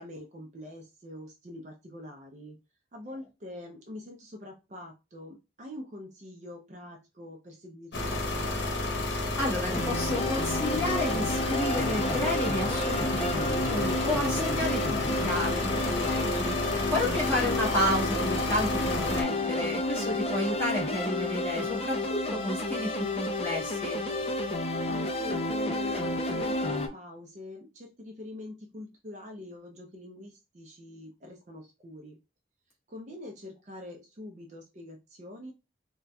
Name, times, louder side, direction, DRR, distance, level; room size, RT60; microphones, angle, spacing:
voice 1, 0.0-2.6 2.9-8.6 24.9-32.2 32.9-35.5, left 1 dB, 40° right, 1 dB, 0.5 m, -44 dB
sound 1, 7.9-19.2, left 2 dB, 85° left, 0.8 m, -31 dB
voice 2, 9.0-24.0, left 1 dB, 15° left, -6 dB, 1.2 m, -32 dB
sound 2, 9.7-26.9, left 1 dB, 35° left, 0.4 m, -31 dB
4.1 x 2.2 x 2.2 m, 0.26 s
head